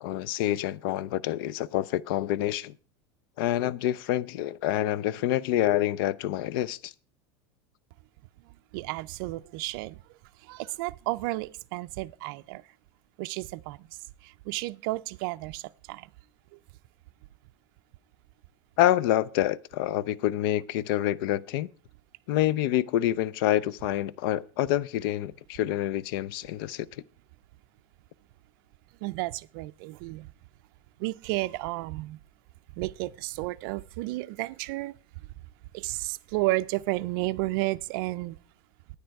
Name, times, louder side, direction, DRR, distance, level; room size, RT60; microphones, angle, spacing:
voice 1, 0.0-2.7 3.4-6.9 18.8-21.7 22.3-26.9, left 13 dB, 65° left, 0.5 m, -27 dB
voice 2, 8.7-10.0 10.5-12.6 13.2-13.8 14.5-15.6 15.9-16.0 29.0-30.3 31.0-32.2 32.8-34.9 35.7-38.3, right 20 dB, 60° right, 0.4 m, -32 dB
10.0 x 9.5 x 4.6 m
supercardioid pair, 155°, 13 cm